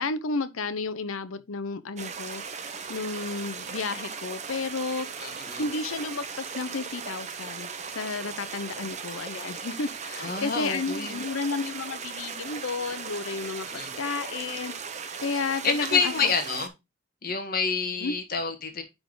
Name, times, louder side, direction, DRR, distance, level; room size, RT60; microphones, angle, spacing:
voice 1, 0.0-5.3 5.6-7.7 7.9-14.7 15.2-16.1 18.0-18.2, left 4 dB, 85° left, 0.8 m, -32 dB
sound 1, 2.0-16.7, right 6 dB, 35° right, 0.8 m, -38 dB
voice 2, 5.2-5.6 8.8-8.9 10.2-11.2 13.7-13.9 15.6-16.7 17.2-18.8, left 5 dB, 45° left, 1.5 m, -28 dB
9.8 x 3.7 x 3.8 m
head